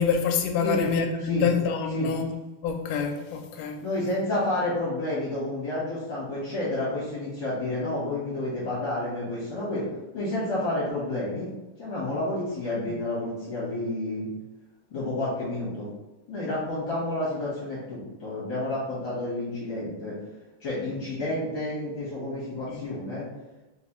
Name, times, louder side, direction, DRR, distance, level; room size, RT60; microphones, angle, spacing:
voice 1, 0.0-2.4 2.6-3.8 12.9-13.0 22.7-22.9, left 6 dB, 80° left, 3 dB, 2.0 m, -26 dB
voice 2, 3.8-9.9 10.1-11.5 11.8-14.3 14.9-15.9 16.3-20.1 20.6-23.2, left 1 dB, 50° left, -9 dB, 1.7 m, -30 dB
4.9 x 3.2 x 3.0 m, 1.1 s
omnidirectional pair, 3.8 m